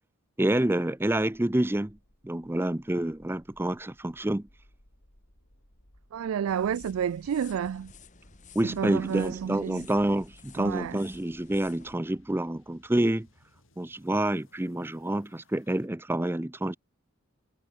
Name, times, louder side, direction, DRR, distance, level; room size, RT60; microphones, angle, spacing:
voice 1, 0.4-2.0 2.2-4.5 8.5-13.3 13.8-16.8, right 1 dB, 10° right, 0.5 m, -28 dB
sound 1, 1.6-15.9, left 1 dB, 65° left, 6.0 m, -61 dB
voice 2, 6.1-7.9 8.6-9.9 10.6-11.0, right 8 dB, 85° right, 0.3 m, -30 dB
sound 2, 6.5-12.0, left 4 dB, 35° left, 2.0 m, -53 dB
head